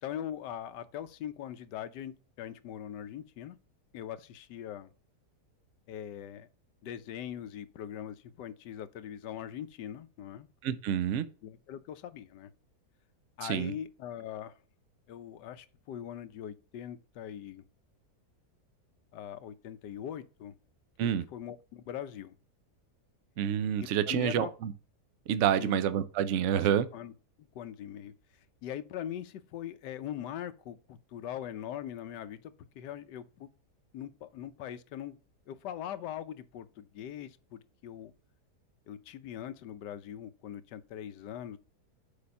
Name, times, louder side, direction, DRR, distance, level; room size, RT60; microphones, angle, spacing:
voice 1, 0.0-3.6 3.9-4.9 5.9-6.5 6.8-10.5 11.4-12.5 13.4-14.5 15.1-17.6 19.1-20.5 21.0-22.4 23.8-24.5 25.6-25.8 26.5-27.1 27.4-28.1 28.6-33.5 33.9-35.2 35.5-38.1 38.9-41.6, left 10 dB, 85° left, 1.3 m, -41 dB
voice 2, 10.6-11.3 13.5-13.7 21.0-21.2 23.4-24.7 25.3-26.9, right 9 dB, 60° right, 0.8 m, -28 dB
6.8 x 4.9 x 5.3 m
omnidirectional pair, 1.8 m